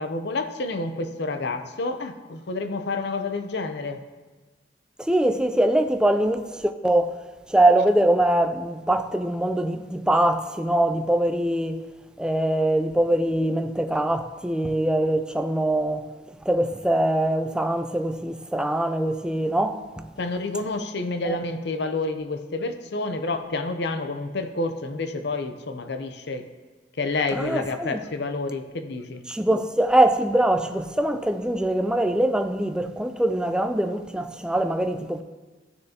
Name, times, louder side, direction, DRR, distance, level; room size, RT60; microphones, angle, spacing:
voice 1, 0.0-4.0 20.2-26.4 27.0-29.2, left 3 dB, 65° left, 0.7 m, -29 dB
voice 2, 5.0-7.2 7.5-11.8 12.2-16.1 16.5-20.0 21.3-21.4 27.3-28.0 29.3-35.2, right 1 dB, 5° right, 0.4 m, -23 dB
14.5 x 6.5 x 2.9 m
head